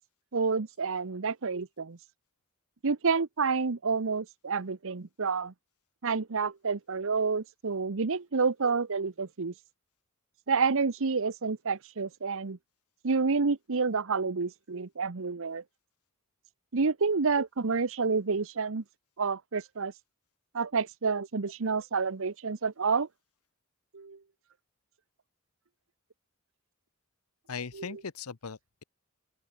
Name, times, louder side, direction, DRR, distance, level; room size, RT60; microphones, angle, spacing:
voice 1, 0.3-2.0 2.8-5.5 6.0-9.5 10.5-12.6 13.0-15.6 16.7-18.8 19.2-19.9 20.5-23.1 23.9-24.2 27.7-28.0, right 4 dB, 65° right, 0.9 m, -29 dB
voice 2, 27.5-28.8, left 5 dB, 80° left, 0.9 m, -39 dB
open air
head